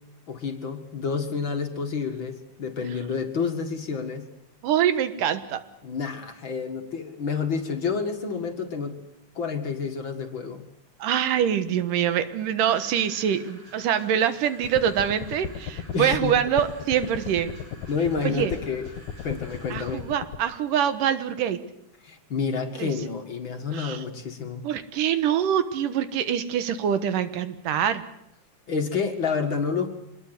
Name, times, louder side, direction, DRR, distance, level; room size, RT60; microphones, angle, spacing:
voice 1, 0.3-4.3 5.8-9.0 9.4-10.7 15.9-16.4 17.9-18.9 19.2-20.1 22.0-24.6 28.7-29.9, left 5 dB, 45° left, 4 dB, 2.3 m, -29 dB
voice 2, 4.6-5.6 11.0-17.5 18.2-18.5 19.7-21.6 22.8-22.9 23.7-24.0 24.6-28.0, right 9 dB, 90° right, 11 dB, 2.9 m, -24 dB
sound 1, 12.7-20.3, right 1 dB, 65° right, 9.4 m, -50 dB
sound 2, 14.6-20.4, left 8 dB, 70° left, 2.5 m, -36 dB
25.0 x 21.0 x 8.2 m, 0.79 s
omnidirectional pair, 3.7 m